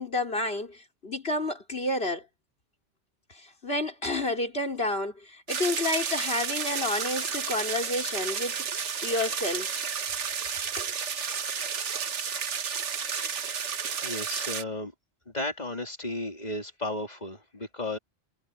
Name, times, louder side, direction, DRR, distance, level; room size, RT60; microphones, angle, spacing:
voice 1, 0.0-2.3 3.3-9.8 10.8-10.9, left 2 dB, 55° left, 4.9 m, -30 dB
sound 1, 5.5-14.6, right 6 dB, 75° right, 1.5 m, -32 dB
voice 2, 11.5-12.0 13.1-13.3 14.0-14.9 15.3-18.0, left 1 dB, 35° left, 3.1 m, -34 dB
omnidirectional pair, 1.2 m